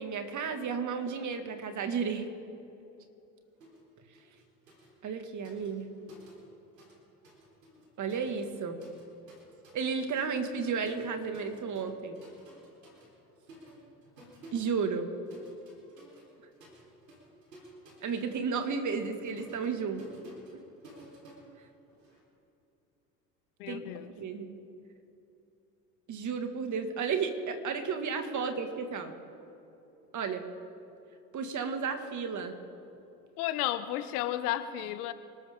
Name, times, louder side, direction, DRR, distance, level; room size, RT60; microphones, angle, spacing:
voice 1, 0.0-2.3 5.0-5.9 8.0-8.8 9.7-12.2 14.5-15.1 18.0-20.0 23.7-23.8 24.2-24.5 26.1-29.1 30.1-30.5 31.3-32.6, right 5 dB, 40° right, 6 dB, 2.1 m, -33 dB
sound 1, 3.6-3.9 4.1-7.0 7.2-22.2, right 1 dB, 90° right, 4.0 m, -55 dB
voice 2, 23.6-24.1 28.4-28.5 33.4-35.1, left 13 dB, 65° left, 12 dB, 1.0 m, -33 dB
27.0 x 13.0 x 3.7 m, 2.9 s
hypercardioid pair, 75°, 48 cm